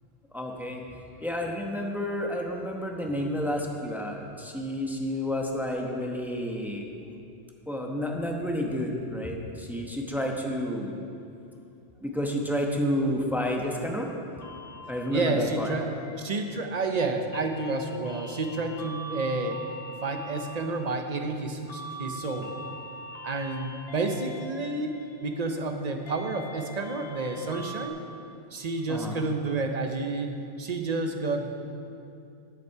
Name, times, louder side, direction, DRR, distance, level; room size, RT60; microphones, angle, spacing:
voice 1, 0.3-0.8 1.2-6.9 7.7-10.9 12.0-14.3 14.9-15.7 23.2-23.3 28.9-29.2, equal, ahead, 0 dB, 0.9 m, -30 dB
sound 1, 14.4-27.9, equal, 55° left, 1.0 m, -43 dB
voice 2, 15.1-15.9 16.2-19.6 20.0-22.5 23.2-24.9 25.2-28.0 28.5-31.5, right 3 dB, 40° right, 5 dB, 0.8 m, -30 dB
12.5 x 8.3 x 4.7 m, 2.6 s
omnidirectional pair, 1.2 m